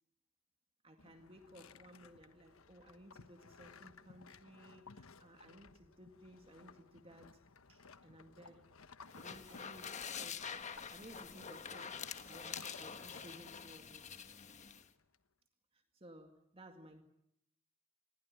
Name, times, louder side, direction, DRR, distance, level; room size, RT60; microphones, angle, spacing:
voice 1, 0.8-7.4 7.7-8.7 9.1-11.9 12.3-14.2 15.7-17.0, right 1 dB, 25° right, 5 dB, 2.1 m, -58 dB
sound 1, 1.0-15.2, left 4 dB, 75° left, 1.2 m, -59 dB
sound 2, 9.1-14.9, left 7 dB, 35° left, 1.4 m, -46 dB
28.5 x 21.5 x 9.5 m, 0.80 s
head